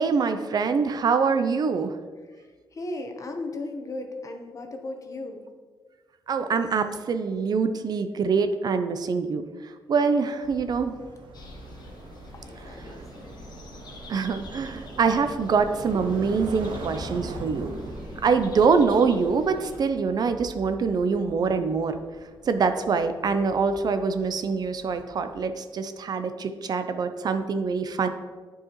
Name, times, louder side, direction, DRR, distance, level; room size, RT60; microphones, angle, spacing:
voice 1, 0.0-1.9 6.3-9.4 9.9-10.9 14.1-17.7 18.2-22.0 22.5-28.1, right 5 dB, 55° right, 9 dB, 0.4 m, -24 dB
voice 2, 2.2-5.5 12.4-13.4, left 2 dB, 40° left, 4 dB, 0.9 m, -37 dB
sound 1, 10.4-25.4, right 2 dB, 80° right, 0.9 m, -42 dB
sound 2, 11.3-19.8, left 1 dB, 55° left, 1.2 m, -44 dB
8.7 x 4.7 x 3.0 m, 1.5 s
cardioid pair, 105°, 8 cm